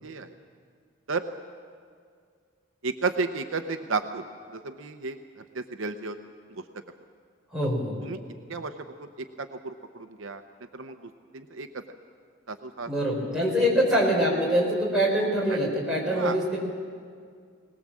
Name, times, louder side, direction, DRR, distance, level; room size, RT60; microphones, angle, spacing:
voice 1, 0.0-0.3 1.1-1.3 2.8-6.2 6.5-6.6 8.0-8.2 8.5-10.4 10.7-11.8 12.5-12.9 15.5-15.7 16.1-16.4, right 4 dB, 65° right, 7 dB, 0.8 m, -33 dB
voice 2, 7.5-8.0 12.9-16.6, equal, 5° right, -4 dB, 4.5 m, -24 dB
21.0 x 19.5 x 7.5 m, 2.1 s
head